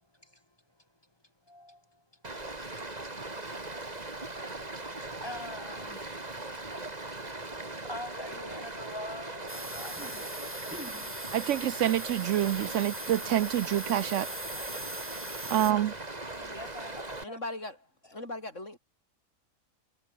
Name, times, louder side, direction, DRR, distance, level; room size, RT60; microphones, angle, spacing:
voice 1, 1.5-2.0 2.4-2.5 4.8-10.8 12.8-12.9 14.5-14.8 15.5-15.9 16.3-17.4, left 1 dB, 20° left, 5.1 m, -45 dB
Stream, 2.2-17.2, right 2 dB, 30° right, 2.7 m, -40 dB
sound 1, 9.5-15.7, right 1 dB, 10° right, 3.1 m, -41 dB
voice 2, 11.3-14.3 15.5-15.9, right 12 dB, 70° right, 0.9 m, -27 dB
voice 3, 17.2-18.8, left 2 dB, 65° left, 6.4 m, -39 dB
omnidirectional pair, 1.4 m